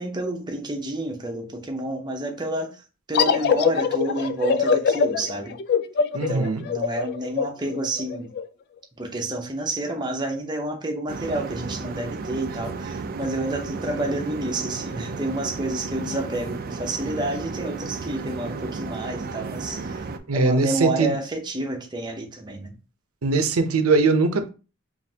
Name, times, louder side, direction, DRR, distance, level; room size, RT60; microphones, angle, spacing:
voice 1, 0.0-2.7 3.1-5.6 6.1-8.3 9.0-20.0 20.3-22.7, right 2 dB, 20° right, 0.7 m, -29 dB
sound 1, 3.1-8.4, left 6 dB, 50° left, 0.3 m, -23 dB
voice 2, 6.1-6.6 20.3-21.1 23.2-24.5, right 3 dB, 90° right, 0.7 m, -21 dB
sound 2, 11.1-20.2, right 4 dB, 45° right, 0.4 m, -33 dB
5.1 x 2.6 x 2.8 m
head